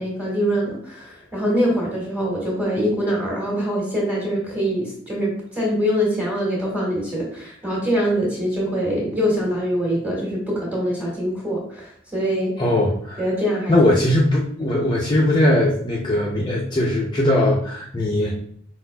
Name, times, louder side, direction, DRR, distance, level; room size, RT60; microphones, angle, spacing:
voice 1, 0.0-12.5 13.2-13.7, equal, 10° right, -5 dB, 1.6 m, -24 dB
voice 2, 12.6-13.2 13.7-18.4, left 1 dB, 25° left, -4 dB, 0.5 m, -19 dB
4.9 x 4.0 x 2.2 m, 0.62 s
head